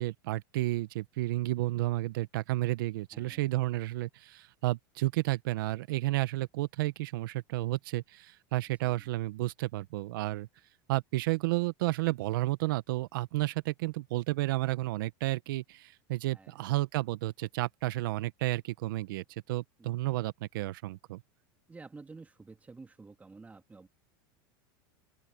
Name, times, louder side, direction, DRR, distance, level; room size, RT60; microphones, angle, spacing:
voice 1, 0.0-10.5 10.9-21.2, right 18 dB, 75° right, 1.0 m, -32 dB
voice 2, 3.1-3.5 8.8-9.1 16.3-16.6 19.8-19.9 21.7-23.9, right 3 dB, 15° right, 2.2 m, -51 dB
open air
supercardioid pair, 115°, 11 cm